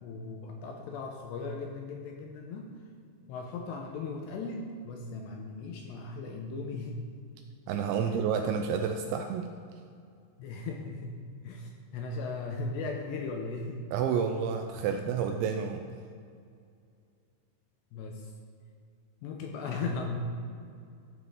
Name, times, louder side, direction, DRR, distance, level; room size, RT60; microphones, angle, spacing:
voice 1, 0.0-2.7 3.3-7.0 7.9-8.1 8.5-8.6 10.4-11.2 11.4-13.9 14.8-14.9 17.9-18.3 19.2-20.2, left 3 dB, 80° left, 2 dB, 2.6 m, -37 dB
voice 2, 7.7-9.5 13.9-15.8, right 7 dB, 85° right, 5 dB, 2.6 m, -30 dB
15.0 x 8.0 x 3.7 m, 2.4 s
omnidirectional pair, 5.6 m